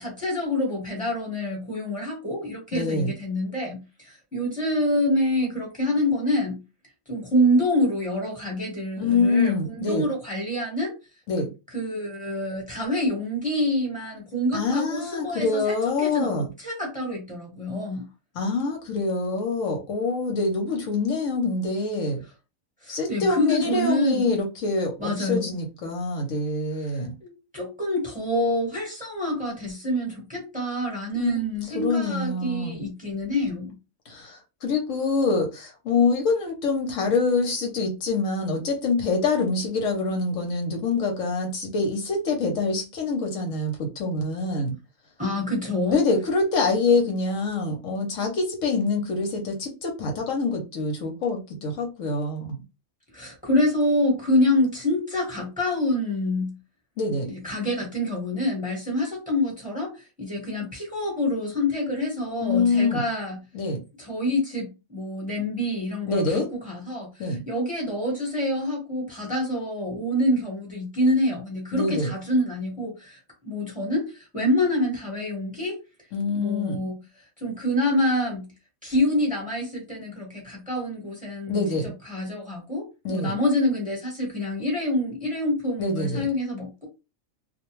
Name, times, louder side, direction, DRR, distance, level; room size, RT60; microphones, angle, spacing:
voice 1, 0.0-6.6 7.1-10.9 11.7-18.1 22.8-24.3 25.0-25.6 26.9-33.7 45.2-46.0 53.1-56.5 57.2-63.4 64.0-75.8 76.3-76.9 77.4-78.5 78.8-81.7 82.0-86.8, left 1 dB, 5° right, 1.0 m, -26 dB
voice 2, 2.7-3.1 9.0-10.1 11.3-11.5 14.5-16.5 18.3-22.2 22.9-27.1 31.2-31.3 31.7-32.8 34.1-44.7 45.9-52.6 57.0-57.3 62.4-63.0 63.5-63.8 66.1-66.5 67.2-67.4 71.7-72.1 76.1-76.8 81.5-81.9 83.0-83.3 85.8-86.3, left 3 dB, 70° left, 1.0 m, -25 dB
2.4 x 2.2 x 3.0 m
omnidirectional pair, 1.4 m